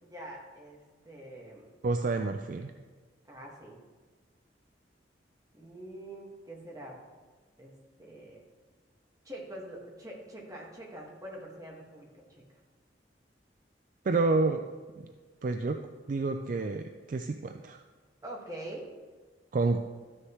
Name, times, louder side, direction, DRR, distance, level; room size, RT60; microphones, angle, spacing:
voice 1, 0.0-1.7 3.3-3.8 5.5-7.0 7.6-7.7 8.0-8.4 9.2-12.4 18.2-18.9, right 1 dB, 20° right, -2 dB, 1.7 m, -44 dB
voice 2, 1.8-2.7 14.0-14.6 15.0-15.1 15.4-15.8 16.1-17.8 19.5-19.8, right 3 dB, 50° right, 6 dB, 0.4 m, -29 dB
13.0 x 6.5 x 3.1 m, 1.4 s
head